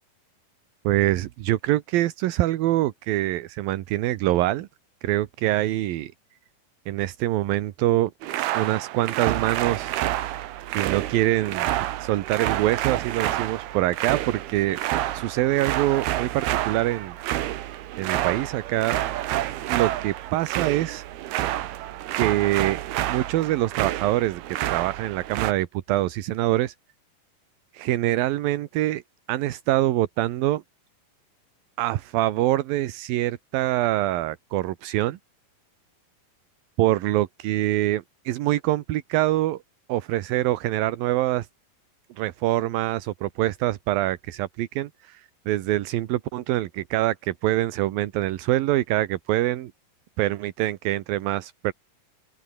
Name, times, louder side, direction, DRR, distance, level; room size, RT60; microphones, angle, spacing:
voice 1, 0.8-4.7 5.0-6.1 6.9-8.1 8.5-10.0 10.7-14.8 15.1-17.2 18.0-19.0 19.7-21.0 21.4-21.6 22.2-22.8 23.1-26.7 27.7-29.0 29.3-30.6 31.8-35.2 36.8-39.6 39.9-41.5 42.2-49.7 50.2-51.7, right 15 dB, 75° right, 2.8 m, -25 dB
sound 1, 8.2-25.5, right 14 dB, 90° right, 3.2 m, -29 dB
open air
omnidirectional pair, 4.4 m